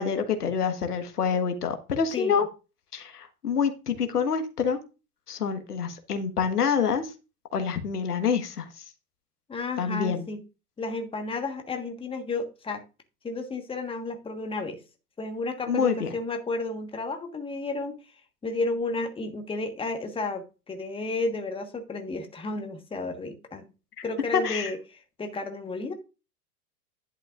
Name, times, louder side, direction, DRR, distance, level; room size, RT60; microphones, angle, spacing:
voice 1, 0.0-2.5 2.9-4.8 5.3-7.1 7.5-8.7 9.8-10.3 15.7-16.1 24.3-24.7, left 6 dB, 80° left, 7 dB, 1.5 m, -26 dB
voice 2, 2.1-2.4 9.5-10.4 10.8-12.8 13.2-14.8 15.2-18.0 18.4-23.7 24.0-25.9, left 3 dB, 10° left, 5 dB, 1.4 m, -32 dB
11.0 x 8.4 x 2.5 m, 0.30 s
figure-of-eight pair, 100°, 46 cm